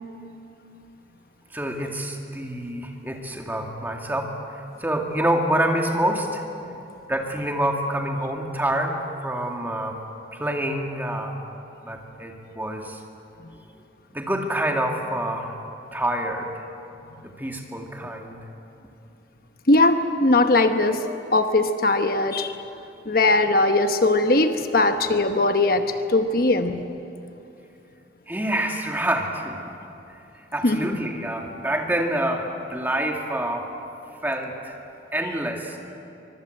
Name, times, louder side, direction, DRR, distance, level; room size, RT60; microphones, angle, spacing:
voice 1, 1.5-6.4 7.1-10.0 10.3-11.4 11.8-13.0 14.1-15.5 15.9-16.6 17.2-18.5 28.3-29.7 30.5-33.7 34.2-34.7 35.1-35.8, right 1 dB, 10° right, 1 dB, 2.2 m, -27 dB
voice 2, 19.7-21.1 21.3-22.6 23.1-26.8 30.6-31.0, left 2 dB, 50° left, 7 dB, 1.0 m, -20 dB
24.5 x 23.0 x 7.9 m, 2.8 s
head